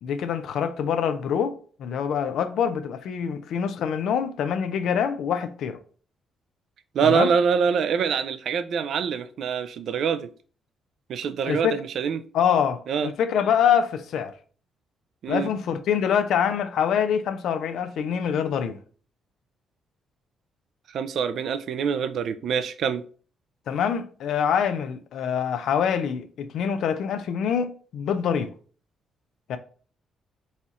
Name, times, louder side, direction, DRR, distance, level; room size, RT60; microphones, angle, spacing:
voice 1, 0.0-5.8 7.0-7.3 11.5-11.8 12.3-14.3 15.3-18.8 23.7-28.5 29.5-29.6, left 8 dB, 75° left, 0.4 m, -25 dB
voice 2, 6.9-10.3 11.1-12.2 12.9-13.1 15.2-15.5 20.9-23.0, right 6 dB, 65° right, 0.3 m, -25 dB
4.2 x 2.4 x 4.0 m
cardioid pair, 90°, 0 cm